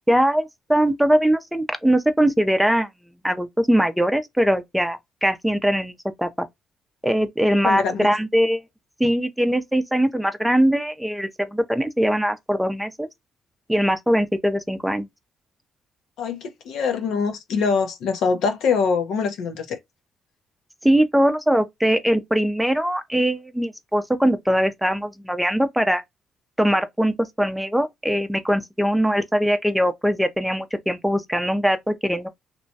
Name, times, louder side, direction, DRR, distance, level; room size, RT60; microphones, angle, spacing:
voice 1, 0.1-2.9 3.2-5.9 6.2-6.5 7.0-8.6 9.0-13.1 13.7-15.1 20.8-26.0 26.6-32.3, equal, ahead, 0.5 m, -21 dB
voice 2, 7.6-8.1 16.2-19.8, left 5 dB, 80° left, 0.7 m, -23 dB
3.0 x 2.1 x 2.7 m
cardioid pair, 90°, 0 cm